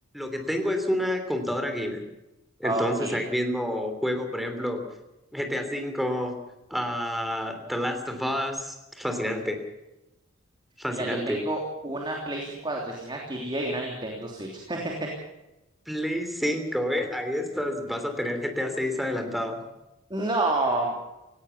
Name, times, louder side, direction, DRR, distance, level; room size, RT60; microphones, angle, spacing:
voice 1, 0.1-2.0 2.6-4.9 5.3-6.4 6.7-9.6 10.8-11.4 15.9-19.7, equal, ahead, 6 dB, 3.2 m, -29 dB
voice 2, 2.6-3.2 9.1-9.4 10.9-15.1 20.1-21.0, right 2 dB, 25° right, 0 dB, 3.2 m, -30 dB
18.0 x 17.5 x 8.3 m, 0.95 s
head